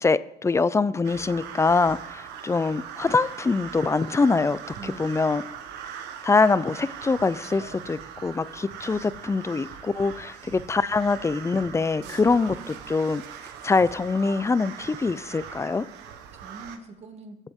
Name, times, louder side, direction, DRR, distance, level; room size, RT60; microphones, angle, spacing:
voice 1, 0.0-5.4 6.2-13.2 13.6-15.9, left 4 dB, 15° left, 0.4 m, -24 dB
sound 1, 1.0-16.8, right 8 dB, 90° right, 1.2 m, -41 dB
voice 2, 4.8-5.5 7.2-8.0 12.0-12.4 15.9-17.4, right 3 dB, 40° right, 2.3 m, -45 dB
20.5 x 8.1 x 3.6 m
cardioid pair, 110°, 17 cm